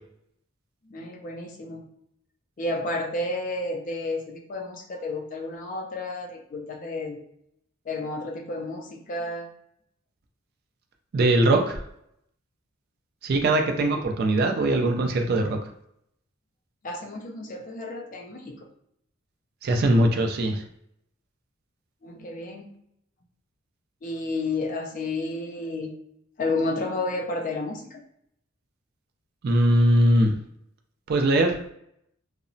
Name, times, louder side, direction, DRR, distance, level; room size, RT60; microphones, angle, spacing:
voice 1, 0.8-1.9 2.6-7.2 7.9-9.5 13.8-14.0 16.8-18.7 22.0-22.7 24.0-25.9 26.4-28.0, left 2 dB, 35° left, 2 dB, 0.3 m, -31 dB
voice 2, 11.1-11.8 13.2-15.6 19.6-20.6 29.4-30.3 31.1-31.6, right 1 dB, 45° right, 4 dB, 0.3 m, -21 dB
2.8 x 2.0 x 2.5 m, 0.72 s
head